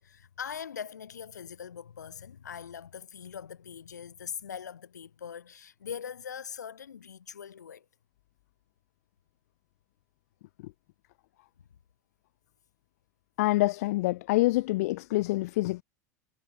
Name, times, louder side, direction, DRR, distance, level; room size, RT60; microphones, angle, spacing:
voice 1, 0.0-7.9, left 8 dB, 85° left, 3.3 m, -42 dB
voice 2, 13.4-15.8, left 19 dB, 65° left, 0.4 m, -26 dB
hypercardioid pair, 85°, 9 cm